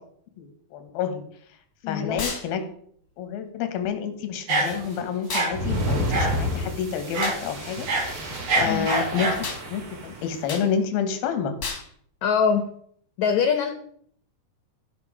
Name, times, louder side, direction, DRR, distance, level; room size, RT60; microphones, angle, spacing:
voice 1, 0.4-1.6 1.9-2.6 3.2-9.4 9.7-11.6, left 7 dB, 90° left, 8 dB, 3.1 m, -29 dB
voice 2, 1.8-2.3 8.7-8.9 12.2-12.7 13.2-13.7, left 6 dB, 70° left, 7 dB, 1.8 m, -23 dB
sound 1, 2.2-2.5 5.3-5.5 7.2-7.4 9.4-9.6 10.5-10.7 11.6-11.9, left 4 dB, 40° left, 1.3 m, -31 dB
sound 2, 4.5-5.0 5.3-5.5 6.1-6.4 7.1-7.4 7.7-9.4, right 2 dB, 80° right, 6.0 m, -25 dB
sound 3, 5.5-10.4, equal, 60° right, 0.9 m, -30 dB
13.0 x 5.7 x 4.9 m, 0.63 s
omnidirectional pair, 4.1 m